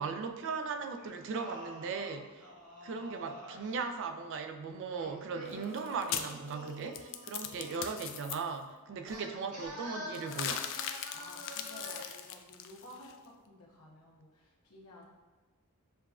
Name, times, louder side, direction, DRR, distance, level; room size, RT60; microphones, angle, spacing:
voice 1, 0.0-2.4 2.8-10.7, right 5 dB, 55° right, 6 dB, 0.4 m, -38 dB
Singing, 1.0-3.8 4.8-8.0 9.1-12.2, equal, 85° right, 1.0 m, -47 dB
sound 1, 5.5-8.3 10.2-13.1, left 9 dB, 60° left, 0.3 m, -39 dB
sound 2, 9.1-9.9 10.2-10.5, right 1 dB, ahead, 0.6 m, -57 dB
voice 2, 11.1-15.0, left 1 dB, 80° left, -2 dB, 0.9 m, -54 dB
6.6 x 2.3 x 2.4 m, 1.3 s
head